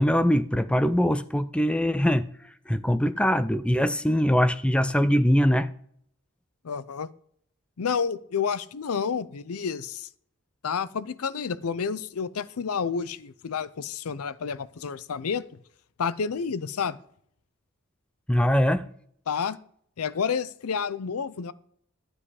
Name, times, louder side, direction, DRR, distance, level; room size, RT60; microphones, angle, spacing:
voice 1, 0.0-2.3 2.7-5.7 18.3-18.9, equal, 5° left, 0.4 m, -22 dB
voice 2, 6.6-7.1 7.8-10.1 10.6-15.4 16.0-17.0 19.3-19.6 20.0-21.5, left 6 dB, 85° left, 0.6 m, -30 dB
12.0 x 7.7 x 4.9 m
head